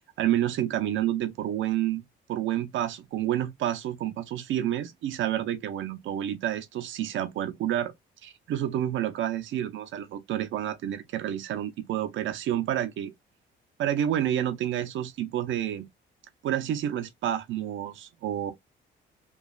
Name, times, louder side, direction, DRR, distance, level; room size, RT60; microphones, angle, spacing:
voice 1, 0.2-2.0 2.3-7.9 8.2-13.1 13.8-15.8 16.4-18.5, right 11 dB, 75° right, 0.6 m, -29 dB
3.1 x 2.3 x 2.3 m
cardioid pair, 90°, 20 cm